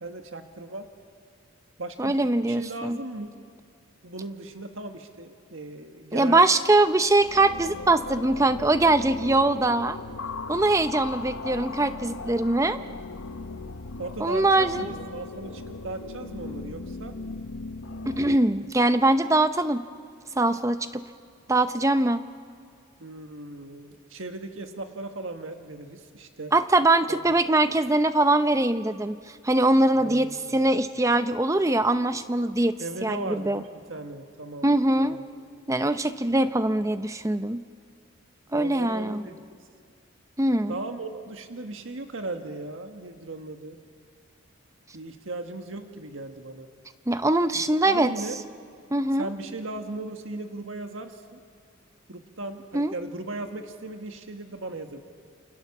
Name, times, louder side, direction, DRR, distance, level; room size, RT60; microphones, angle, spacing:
voice 1, 0.0-0.9 1.8-2.2 2.5-3.3 4.0-6.4 14.0-17.1 23.0-26.5 27.1-27.3 29.9-30.7 32.8-35.2 38.5-39.4 40.7-43.8 44.9-46.7 47.5-48.4 49.1-51.4 52.1-55.0, right 2 dB, 70° right, 5 dB, 1.6 m, -37 dB
voice 2, 2.0-3.0 6.1-10.0 10.5-12.8 14.2-14.8 18.1-19.8 20.4-21.0 21.5-22.2 26.5-29.2 29.4-33.6 34.6-35.2 35.7-37.6 38.5-39.2 40.4-40.7 47.1-48.1 48.9-49.2 52.7-52.9, right 2 dB, 15° right, 11 dB, 0.6 m, -22 dB
sound 1, 6.8-18.4, left 3 dB, 75° left, 0.9 m, -38 dB
29.0 x 27.5 x 7.2 m, 2.2 s
head